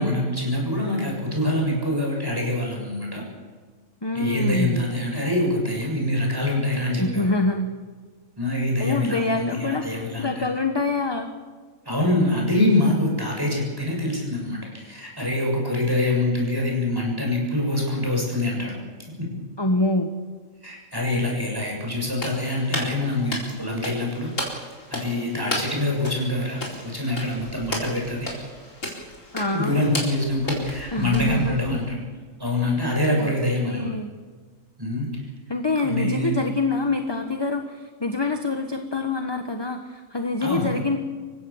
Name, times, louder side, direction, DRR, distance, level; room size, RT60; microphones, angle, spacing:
voice 1, 0.0-3.2 4.1-7.3 8.4-10.5 11.9-18.8 19.2-19.3 20.6-24.3 24.9-28.3 29.5-32.0 32.4-33.9 34.8-35.1 35.8-36.4 40.4-40.8, left 1 dB, 15° right, -1 dB, 6.9 m, -25 dB
voice 2, 4.0-4.9 7.0-7.7 8.8-11.3 19.6-20.1 29.3-30.0 30.9-31.5 33.2-33.3 33.7-34.1 35.5-41.0, left 2 dB, 20° left, 5 dB, 1.1 m, -25 dB
sound 1, 22.1-31.9, left 1 dB, 70° left, 4.8 m, -34 dB
27.5 x 16.0 x 7.2 m, 1.5 s
omnidirectional pair, 1.4 m